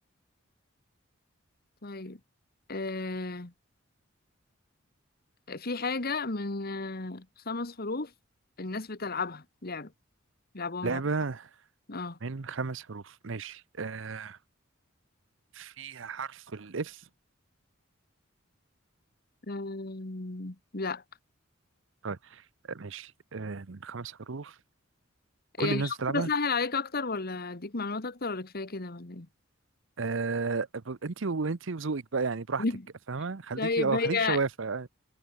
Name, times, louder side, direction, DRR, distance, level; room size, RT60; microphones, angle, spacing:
voice 1, 1.8-2.2 2.7-3.5 5.5-8.1 8.6-9.9 10.5-11.0 11.9-12.2 19.5-21.0 25.6-29.3 32.6-32.8 33.6-34.4, left 3 dB, 50° left, 1.6 m, -32 dB
voice 2, 10.8-11.5 12.2-14.4 15.5-17.0 22.0-22.4 22.7-24.5 25.6-26.3 30.0-32.6 33.1-34.9, right 4 dB, 65° right, 0.8 m, -33 dB
head